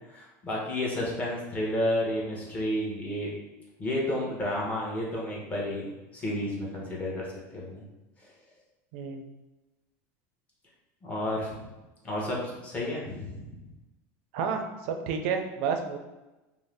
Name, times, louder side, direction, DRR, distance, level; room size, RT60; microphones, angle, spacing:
voice 1, 0.1-3.3 3.8-7.3 7.5-7.8 8.2-8.3 11.0-11.7 12.0-13.6, left 1 dB, 20° left, -5 dB, 0.8 m, -31 dB
voice 2, 8.9-9.2 14.3-16.0, right 6 dB, 70° right, 5 dB, 0.4 m, -30 dB
2.6 x 2.0 x 3.2 m, 1.1 s
supercardioid pair, 140°, 7 cm